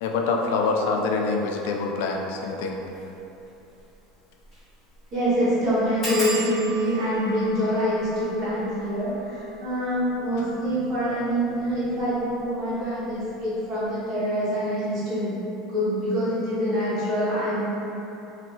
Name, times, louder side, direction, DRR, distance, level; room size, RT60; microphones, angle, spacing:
voice 1, 0.0-2.8 10.3-10.6, left 4 dB, 80° left, 2 dB, 0.3 m, -25 dB
sound 1, 2.8-3.0 3.5-3.6 3.8-3.9 4.4-4.7 4.9-5.0 6.0-11.3 12.0-12.5 12.8-13.2 13.4-13.5, right 1 dB, 25° left, 1.3 m, -37 dB
voice 2, 5.1-15.4 15.7-17.6, equal, 40° right, -11 dB, 1.5 m, -25 dB
2.9 x 2.6 x 2.8 m, 2.9 s
supercardioid pair, 135°, 0 cm